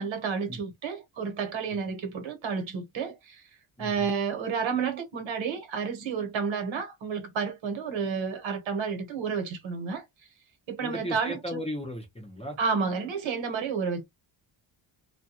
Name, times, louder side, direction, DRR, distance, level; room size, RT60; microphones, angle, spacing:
voice 1, 0.0-3.4 3.8-10.0 10.7-11.6 12.6-14.0, right 5 dB, 75° right, 1.1 m, -31 dB
voice 2, 10.8-12.6, left 1 dB, 15° left, 0.6 m, -36 dB
2.3 x 2.2 x 2.7 m
wide cardioid pair, 145°, 46 cm